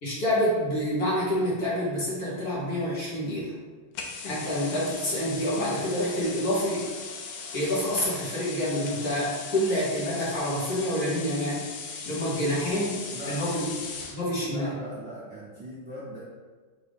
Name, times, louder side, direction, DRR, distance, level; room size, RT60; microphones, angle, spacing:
voice 1, 0.0-3.5 4.2-6.9 7.5-11.6 12.0-13.0 13.3-13.7 14.1-14.7, equal, 50° left, -8 dB, 1.7 m, -27 dB
sound 1, 3.9-14.2, left 5 dB, 75° left, 0.8 m, -38 dB
voice 2, 13.1-13.5 14.5-16.2, equal, 50° right, -9 dB, 0.8 m, -39 dB
5.0 x 2.7 x 3.5 m, 1.5 s
omnidirectional pair, 2.2 m